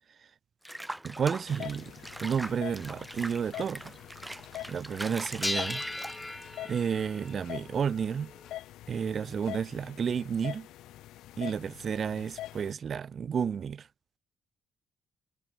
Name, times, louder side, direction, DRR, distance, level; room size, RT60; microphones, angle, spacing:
Water / Bathtub (filling or washing), 0.6-6.6, right 1 dB, 5° right, 6.5 m, -42 dB
voice 1, 1.0-1.9 2.2-3.9 4.7-5.8 6.6-8.3 8.9-10.7 11.4-13.9, right 7 dB, 50° right, 2.0 m, -31 dB
sound 1, 1.1-1.2 2.1-2.2 2.6-2.7 3.2-3.5 5.4-8.6, left 2 dB, 10° left, 2.6 m, -38 dB
sound 2, 1.5-12.7, left 14 dB, 85° left, 4.9 m, -44 dB
cardioid pair, 90°, 0 cm